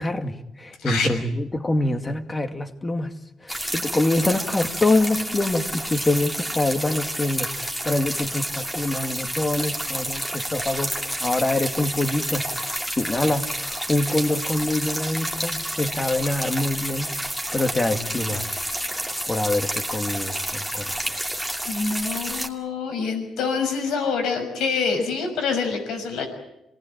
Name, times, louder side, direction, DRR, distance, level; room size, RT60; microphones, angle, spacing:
voice 1, 0.0-3.2 3.4-12.5 13.0-17.1 17.5-18.5 19.3-21.0, left 2 dB, 20° left, 7 dB, 2.3 m, -25 dB
sound 1, 3.5-22.5, equal, 5° left, 2.6 m, -30 dB
voice 2, 21.7-26.3, left 5 dB, 85° left, 5 dB, 6.2 m, -26 dB
26.5 x 19.0 x 9.1 m, 0.87 s
cardioid pair, 90°, 0 cm